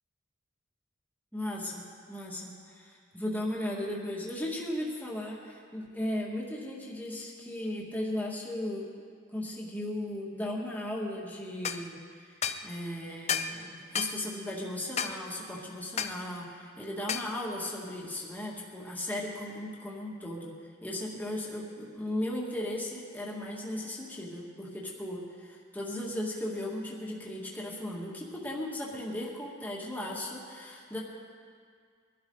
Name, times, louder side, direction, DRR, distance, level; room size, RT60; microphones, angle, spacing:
voice 1, 1.3-1.8 2.1-8.9 9.3-12.0 12.6-20.5 20.8-31.0, left 1 dB, 10° left, -4 dB, 2.1 m, -36 dB
sound 1, 11.6-11.8 12.4-12.6 13.3-13.6 14.0-14.2 15.0-15.2 16.0-16.2 17.1-17.3, left 7 dB, 30° left, 0.5 m, -31 dB
22.5 x 12.0 x 4.0 m, 2.1 s
head